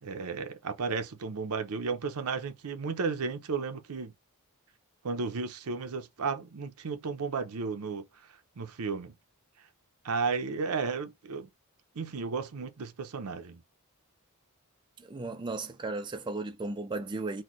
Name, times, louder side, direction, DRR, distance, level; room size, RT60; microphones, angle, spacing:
voice 1, 0.0-4.1 5.0-8.0 8.6-9.1 10.0-11.5 11.9-13.6, right 4 dB, 80° right, 0.6 m, -33 dB
voice 2, 15.0-17.4, right 3 dB, 20° right, 0.4 m, -35 dB
4.2 x 2.2 x 3.0 m
head